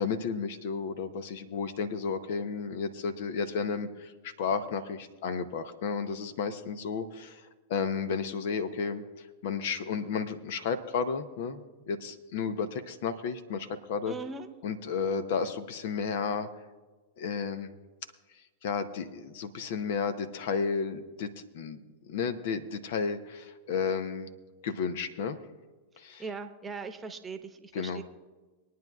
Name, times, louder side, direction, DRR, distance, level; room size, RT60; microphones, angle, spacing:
voice 1, 0.0-14.1 14.6-16.5 17.2-17.7 18.6-21.8 22.0-24.3 24.6-25.4 26.0-26.2 27.7-28.0, left 5 dB, 65° left, 11 dB, 0.8 m, -32 dB
voice 2, 14.1-14.5 26.2-28.0, right 4 dB, 20° right, 8 dB, 1.0 m, -39 dB
25.5 x 9.4 x 2.4 m, 1.3 s
hypercardioid pair, 100°, 0 cm